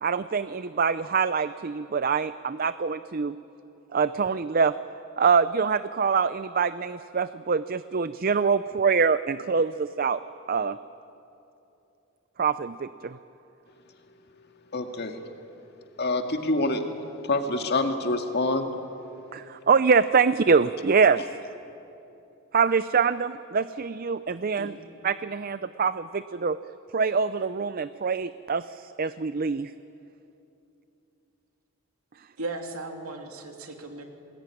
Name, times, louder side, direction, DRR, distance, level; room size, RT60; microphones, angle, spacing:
voice 1, 0.0-3.4 3.9-4.8 5.2-10.2 10.5-10.8 12.4-13.2 19.3-21.2 22.5-24.7 25.0-26.6 26.9-29.7, right 5 dB, 40° right, 14 dB, 0.5 m, -24 dB
voice 2, 14.7-15.2 16.0-16.8 17.2-18.7, left 2 dB, 50° left, 5 dB, 2.1 m, -26 dB
voice 3, 32.4-34.0, right 2 dB, 85° right, 4 dB, 3.1 m, -36 dB
28.0 x 20.5 x 9.9 m, 2.9 s
head